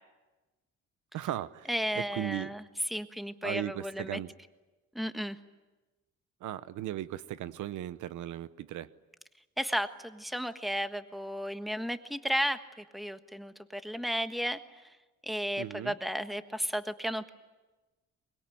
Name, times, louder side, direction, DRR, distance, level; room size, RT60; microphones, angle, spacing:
voice 1, 1.1-1.7 2.1-2.5 3.4-4.3 6.4-8.9 15.6-15.9, right 12 dB, 80° right, 15 dB, 0.9 m, -37 dB
voice 2, 1.7-4.2 4.9-5.4 9.6-12.6 12.9-14.8 15.2-17.3, equal, ahead, 9 dB, 1.4 m, -33 dB
24.0 x 21.5 x 9.3 m, 1.2 s
cardioid pair, 90°, 30 cm